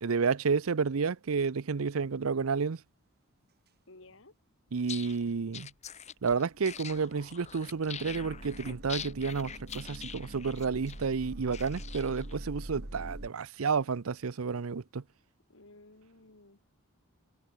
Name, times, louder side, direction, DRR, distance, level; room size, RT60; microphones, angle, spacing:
voice 1, 0.0-2.8 4.7-5.7 6.2-15.0, right 5 dB, 80° right, 0.6 m, -31 dB
voice 2, 3.9-4.3 15.5-16.7, left 2 dB, 65° left, 3.4 m, -55 dB
sound 1, 4.1-4.2 5.8-5.9 6.4-13.3, right 1 dB, 50° right, 2.7 m, -44 dB
sound 2, 4.8-12.4, left 8 dB, 35° left, 0.9 m, -44 dB
head